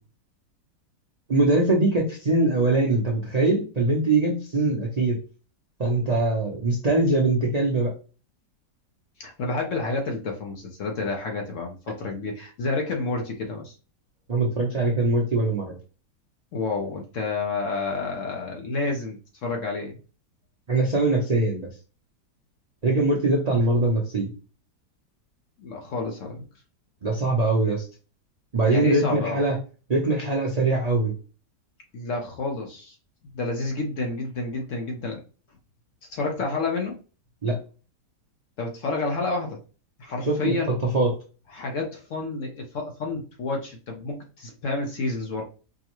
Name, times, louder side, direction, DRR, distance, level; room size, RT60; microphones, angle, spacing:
voice 1, 1.3-5.2 5.8-7.9 14.3-15.7 20.7-21.7 22.8-24.3 27.0-27.8 28.5-29.6 29.9-31.1 37.4-37.6 40.2-40.5 40.9-41.1, right 2 dB, 55° right, -1 dB, 0.4 m, -22 dB
voice 2, 9.2-13.8 16.5-20.0 25.6-26.4 28.7-29.4 31.9-33.0 33.3-35.2 36.1-37.0 38.6-39.6 40.0-40.7 41.5-45.4, left 3 dB, 60° left, 1 dB, 0.9 m, -29 dB
4.6 x 2.1 x 2.9 m, 0.35 s
omnidirectional pair, 1.8 m